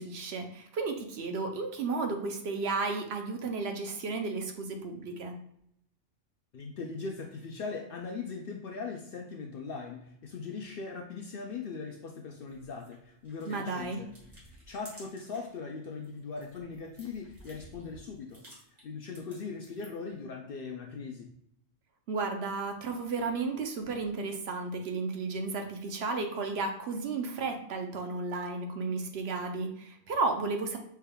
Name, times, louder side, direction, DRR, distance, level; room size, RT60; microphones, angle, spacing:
voice 1, 0.0-5.3 13.4-14.0 22.1-30.8, right 3 dB, 65° right, 4 dB, 0.8 m, -33 dB
voice 2, 6.5-14.2 14.5-18.4 18.8-21.3, left 4 dB, 60° left, 3 dB, 0.6 m, -40 dB
sound 1, 12.5-15.6 15.9-20.1, equal, 35° right, 1.6 m, -55 dB
5.5 x 3.4 x 2.2 m, 0.73 s
omnidirectional pair, 1.3 m